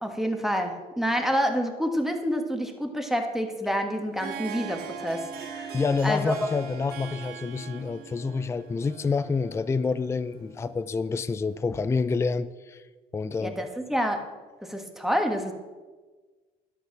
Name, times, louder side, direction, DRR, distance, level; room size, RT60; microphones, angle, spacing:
voice 1, 0.0-5.7 6.0-6.3 13.4-14.2 14.6-15.5, equal, ahead, 3 dB, 1.6 m, -28 dB
Harp, 3.9-11.6, right 7 dB, 70° right, 1.7 m, -41 dB
voice 2, 5.7-12.8 13.1-13.5, left 4 dB, 15° left, 13 dB, 0.4 m, -28 dB
11.5 x 8.1 x 6.0 m, 1.3 s
cardioid pair, 110°, 17 cm